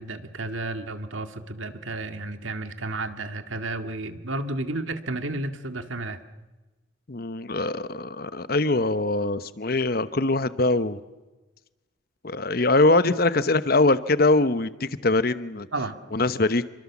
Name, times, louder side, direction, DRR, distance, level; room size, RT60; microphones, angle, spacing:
voice 1, 0.0-6.2 15.7-15.9, right 2 dB, 90° right, 8 dB, 2.0 m, -32 dB
voice 2, 7.1-11.0 12.2-15.7 16.1-16.7, left 2 dB, 50° left, 14 dB, 1.0 m, -22 dB
28.0 x 24.0 x 7.3 m, 1.2 s
head